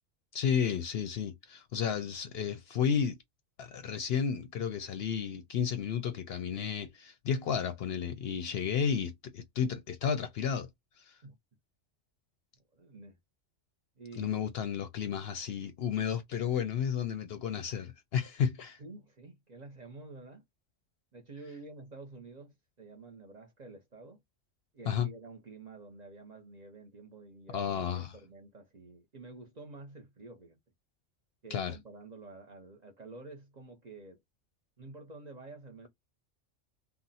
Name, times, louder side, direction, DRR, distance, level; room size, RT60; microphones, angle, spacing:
voice 1, 0.3-3.2 3.6-10.7 11.0-11.2 14.2-18.8 24.9-25.1 27.5-28.2 31.5-31.8, left 7 dB, 65° left, 0.7 m, -32 dB
voice 2, 12.7-13.2 14.0-14.5 18.8-20.4 21.1-24.2 24.7-30.6 31.4-34.2 34.8-35.9, right 3 dB, 45° right, 0.7 m, -49 dB
2.5 x 2.0 x 3.9 m
omnidirectional pair, 1.3 m